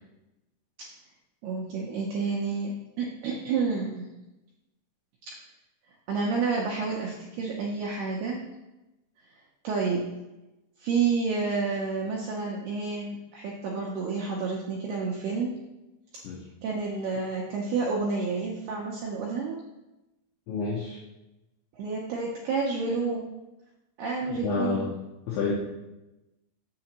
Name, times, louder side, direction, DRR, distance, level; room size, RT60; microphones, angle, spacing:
voice 1, 1.4-4.1 5.3-5.4 6.1-8.4 9.6-10.1 10.8-15.5 16.6-19.6 21.8-23.3 24.0-24.9, right 4 dB, 85° right, -2 dB, 2.2 m, -29 dB
voice 2, 20.5-21.0 24.2-24.9 25.3-25.5, left 4 dB, 75° left, -3 dB, 2.5 m, -29 dB
7.5 x 6.8 x 2.9 m, 0.98 s
omnidirectional pair, 5.5 m